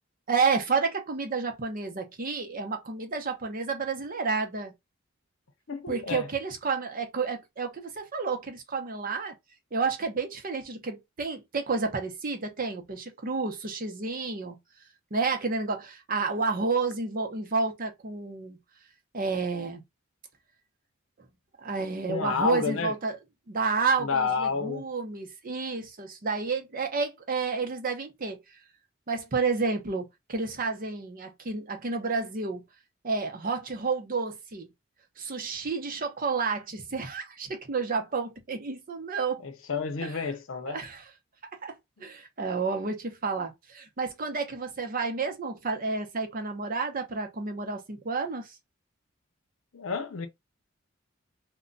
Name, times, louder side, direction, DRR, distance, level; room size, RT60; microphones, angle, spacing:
voice 1, 0.3-4.7 5.9-9.3 9.7-14.6 15.1-18.6 19.1-19.8 21.6-23.2 23.5-28.4 29.1-32.6 33.0-34.7 35.2-39.4 40.0-40.1 40.7-41.0 41.6-41.7 42.0-48.5, right 4 dB, 45° right, 0.7 m, -30 dB
voice 2, 5.7-6.3 22.1-22.9 24.0-24.9 39.4-40.8 49.7-50.3, left 5 dB, 90° left, 0.6 m, -30 dB
2.2 x 2.2 x 3.8 m
head